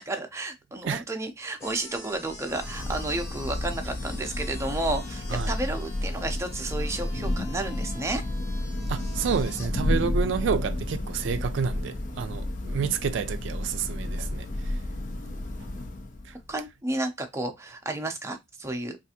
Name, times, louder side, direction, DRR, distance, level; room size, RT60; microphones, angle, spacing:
voice 1, 0.1-8.2 16.5-19.0, right 2 dB, 15° right, 0.5 m, -32 dB
sound 1, 1.6-9.7, left 2 dB, 15° left, 0.8 m, -46 dB
Thunder / Rain, 2.1-16.5, left 1 dB, 45° left, 0.5 m, -31 dB
voice 2, 8.9-14.7 15.3-15.4 16.3-16.4, right 6 dB, 70° right, 0.3 m, -29 dB
3.3 x 2.4 x 2.8 m
head